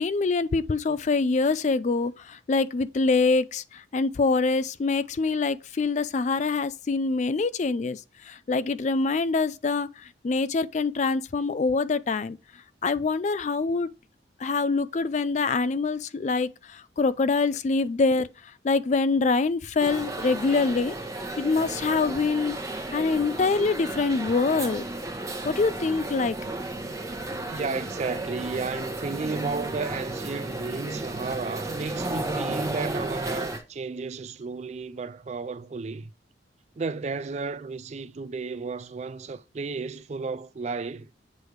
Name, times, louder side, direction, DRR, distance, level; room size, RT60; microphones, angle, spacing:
voice 1, 0.0-12.4 12.8-13.9 14.4-20.9 21.4-22.6 22.9-24.8 25.4-26.4, left 4 dB, 40° left, 0.3 m, -25 dB
sound 1, 19.8-33.6, right 2 dB, 15° right, 1.1 m, -33 dB
voice 2, 27.5-36.1 36.8-41.1, right 4 dB, 35° right, 0.3 m, -33 dB
8.1 x 3.4 x 4.5 m
head